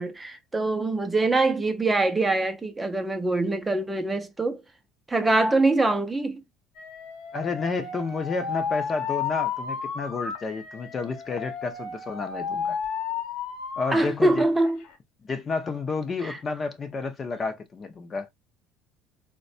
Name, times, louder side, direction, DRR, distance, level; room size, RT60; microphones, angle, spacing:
voice 1, 0.0-4.6 5.1-6.4 13.9-14.8 16.2-16.4, right 2 dB, 15° right, 0.5 m, -24 dB
Alarm, 6.8-14.0 14.4-14.9, left 7 dB, 70° left, 0.9 m, -33 dB
voice 2, 7.3-12.8 13.8-14.4 15.2-18.3, left 4 dB, 25° left, 0.6 m, -31 dB
3.9 x 2.2 x 2.6 m
cardioid pair, 130°, 0 cm